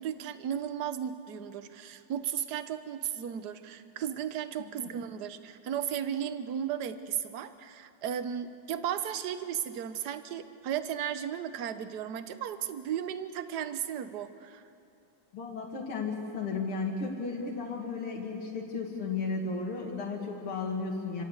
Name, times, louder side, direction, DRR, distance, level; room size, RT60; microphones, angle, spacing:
voice 1, 0.0-14.6, right 9 dB, 55° right, 11 dB, 1.4 m, -35 dB
voice 2, 15.3-21.2, left 4 dB, 80° left, -2 dB, 3.0 m, -34 dB
27.0 x 26.0 x 8.1 m, 2.7 s
omnidirectional pair, 2.3 m